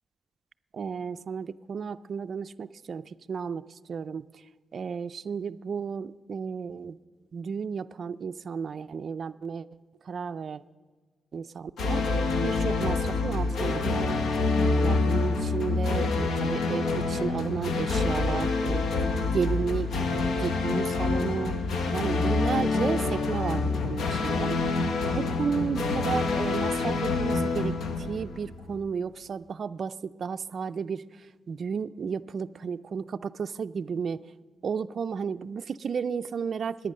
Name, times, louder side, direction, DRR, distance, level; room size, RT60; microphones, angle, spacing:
voice 1, 0.7-7.0 7.3-9.7 10.0-10.6 11.3-14.1 14.6-21.5 21.9-24.6 25.0-34.3 34.6-36.9, right 6 dB, 45° right, 11 dB, 0.4 m, -33 dB
sound 1, 11.8-28.8, left 3 dB, 75° left, 1.1 m, -27 dB
21.0 x 9.1 x 6.5 m, 1.4 s
wide cardioid pair, 170°, 0 cm